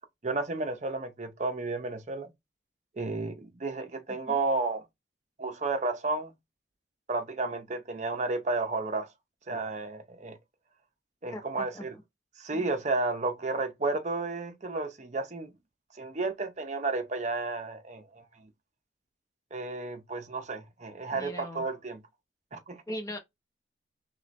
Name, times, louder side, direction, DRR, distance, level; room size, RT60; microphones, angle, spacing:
voice 1, 0.2-2.3 3.0-4.8 5.4-6.3 7.1-9.1 9.5-10.4 11.2-11.9 12.4-15.5 15.9-18.5 19.5-22.0 22.5-22.8, right 3 dB, 40° right, 0.7 m, -32 dB
voice 2, 4.1-4.4 11.3-12.0 12.5-12.7 21.1-21.6 22.9-23.2, equal, 15° left, 0.8 m, -40 dB
4.4 x 3.1 x 3.2 m
head